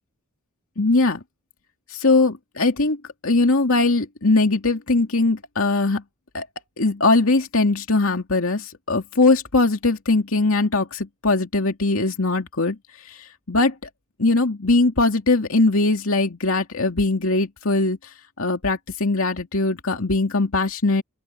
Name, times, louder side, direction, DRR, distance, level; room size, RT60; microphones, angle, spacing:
voice 1, 0.8-1.2 1.9-3.0 3.2-6.0 6.3-6.5 6.8-12.8 13.0-13.8 14.2-18.0 18.4-21.0, left 3 dB, 70° left, 2.5 m, -20 dB
open air
head